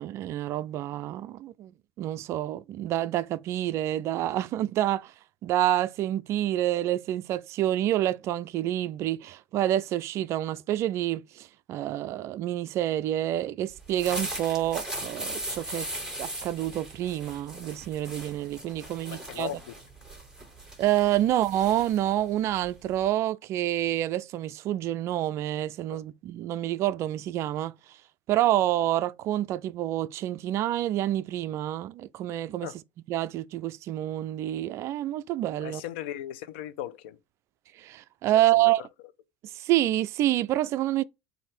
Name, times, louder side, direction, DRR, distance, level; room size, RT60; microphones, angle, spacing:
voice 1, 0.0-1.7 2.0-5.1 5.4-15.9 16.2-19.5 20.8-27.7 28.3-32.7 33.1-35.8 37.8-38.8 39.5-41.0, right 13 dB, 45° right, 0.4 m, -28 dB
sound 1, 13.8-23.1, right 1 dB, 10° right, 3.5 m, -39 dB
voice 2, 19.1-19.7 21.2-21.3 25.9-26.0 32.6-32.7 35.6-37.2 38.3-38.9, left 12 dB, 75° left, 0.8 m, -38 dB
7.7 x 2.7 x 4.9 m
supercardioid pair, 115°, 6 cm